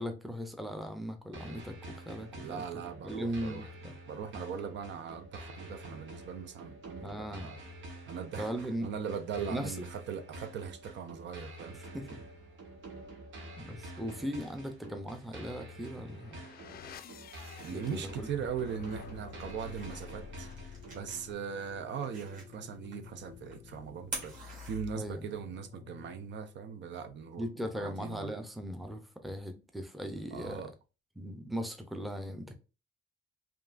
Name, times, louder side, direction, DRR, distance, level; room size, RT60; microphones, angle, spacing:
voice 1, 0.0-2.6 3.0-3.9 7.0-7.5 8.4-8.9 9.5-9.9 11.7-12.2 13.6-16.4 17.7-18.3 23.8-23.9 25.0-25.3 27.4-30.6 31.2-32.5, equal, ahead, 0.5 m, -38 dB
sound 1, 1.3-21.3, right 1 dB, 90° right, 1.2 m, -48 dB
voice 2, 2.4-3.7 4.1-7.6 8.1-8.5 8.8-11.9 17.6-20.5 20.9-24.3 24.6-27.5 27.7-28.3 30.3-30.7, right 7 dB, 70° right, 0.6 m, -40 dB
sound 2, 15.8-26.5, left 8 dB, 50° left, 0.4 m, -51 dB
sound 3, 18.5-25.4, right 3 dB, 45° right, 2.1 m, -48 dB
5.2 x 2.6 x 2.4 m
wide cardioid pair, 170°, 19 cm